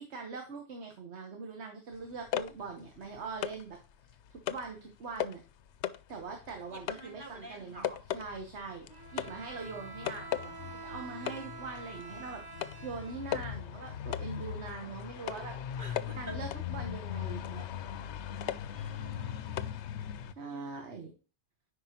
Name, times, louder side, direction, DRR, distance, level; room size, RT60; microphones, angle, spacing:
voice 1, 0.0-3.8 4.3-5.4 6.1-15.6 16.1-17.7 20.4-21.1, right 4 dB, 65° right, 3 dB, 1.4 m, -42 dB
sound 1, 2.0-3.7 4.1-4.7 5.2-5.5 5.8-20.3, left 10 dB, 70° left, 0.8 m, -38 dB
voice 2, 6.7-8.0 15.8-16.4 18.3-19.7 20.5-20.8, right 1 dB, 45° right, 3 dB, 1.1 m, -49 dB
Bowed string instrument, 8.9-13.9, right 4 dB, 25° right, 0.6 m, -47 dB
9.6 x 5.0 x 2.9 m, 0.35 s
omnidirectional pair, 1.2 m